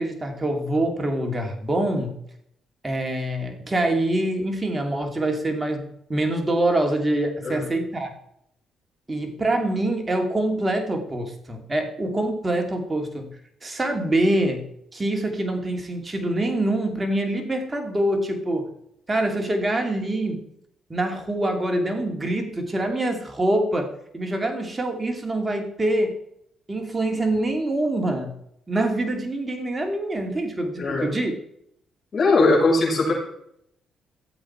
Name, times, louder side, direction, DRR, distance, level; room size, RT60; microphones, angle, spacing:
voice 1, 0.0-2.1 2.8-8.1 9.1-13.3 13.6-14.7 14.9-18.7 19.1-20.4 20.9-23.9 24.1-26.1 26.7-28.3 28.7-31.3, right 1 dB, 20° right, 3 dB, 2.6 m, -25 dB
voice 2, 30.8-31.1 32.1-33.1, left 3 dB, 40° left, -6 dB, 5.9 m, -20 dB
14.0 x 7.8 x 4.6 m, 0.72 s
cardioid pair, 90°, 0 cm